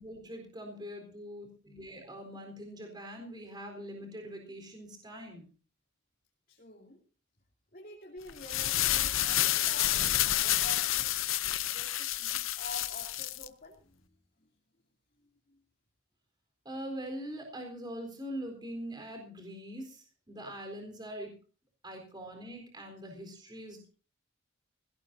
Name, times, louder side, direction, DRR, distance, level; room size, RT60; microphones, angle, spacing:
voice 1, 0.0-5.5 16.6-21.3 21.8-23.9, equal, 20° right, 3 dB, 4.1 m, -43 dB
voice 2, 6.5-7.0 7.7-11.3 11.7-14.1 15.2-15.6, left 2 dB, 45° left, 0 dB, 2.9 m, -48 dB
sound 1, 8.3-13.5, left 13 dB, 85° left, 0.8 m, -29 dB
21.0 x 17.0 x 2.7 m, 0.37 s
head